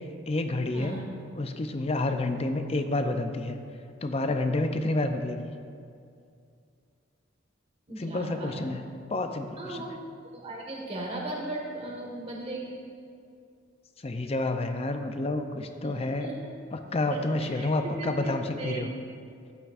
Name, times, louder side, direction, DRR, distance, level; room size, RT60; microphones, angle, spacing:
voice 1, 0.3-1.1 1.4-3.6 4.0-5.5 8.0-8.8 9.1-9.9 14.0-16.3 16.7-18.9, left 2 dB, 30° left, 7 dB, 0.5 m, -29 dB
voice 2, 7.9-8.7 9.6-9.9 10.3-12.8 15.8-15.9 16.2-16.3 17.1-18.1 18.5-18.8, right 2 dB, 30° right, -2 dB, 1.5 m, -37 dB
12.0 x 8.3 x 2.5 m, 2.4 s
head